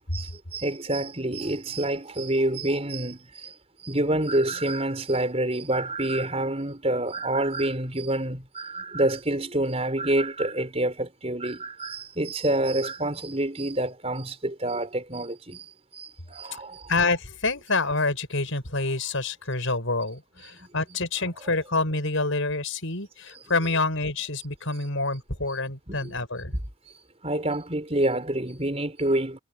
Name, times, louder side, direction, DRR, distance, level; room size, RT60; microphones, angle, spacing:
voice 1, 0.0-3.5 3.8-16.9 20.6-20.7 21.2-21.4 25.5-25.6 25.9-26.1 27.2-29.4, right 1 dB, 30° right, 5.0 m, -27 dB
voice 2, 16.9-26.5, left 3 dB, 65° left, 5.6 m, -27 dB
head